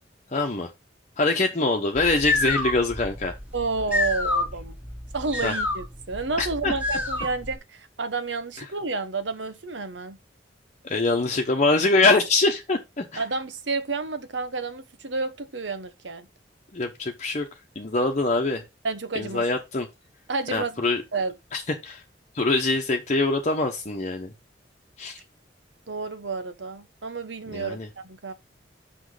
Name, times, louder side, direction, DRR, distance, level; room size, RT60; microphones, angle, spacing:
voice 1, 0.3-0.7 1.2-3.4 5.4-5.5 6.4-6.7 10.8-13.2 16.7-17.5 17.7-18.6 19.1-19.9 20.5-21.0 21.5-22.0 22.3-24.3 25.0-25.2 27.5-27.9, left 3 dB, 40° left, 1.0 m, -24 dB
sound 1, 2.0-7.6, left 2 dB, 10° right, 1.9 m, -28 dB
voice 2, 3.5-4.8 5.1-10.2 13.2-16.3 18.8-19.4 20.3-20.8 21.1-21.3 25.9-28.3, right 3 dB, 90° right, 1.1 m, -30 dB
6.3 x 6.2 x 4.8 m
head